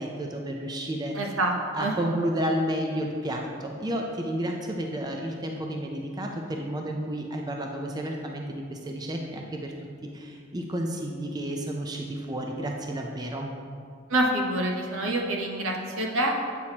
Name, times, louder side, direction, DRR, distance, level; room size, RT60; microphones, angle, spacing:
voice 1, 0.0-1.4 1.7-9.7 10.1-13.5, right 1 dB, 20° right, 1 dB, 0.4 m, -31 dB
voice 2, 1.2-1.9 14.1-16.3, right 1 dB, 75° right, 0 dB, 0.9 m, -26 dB
8.5 x 6.1 x 2.9 m, 2.3 s
head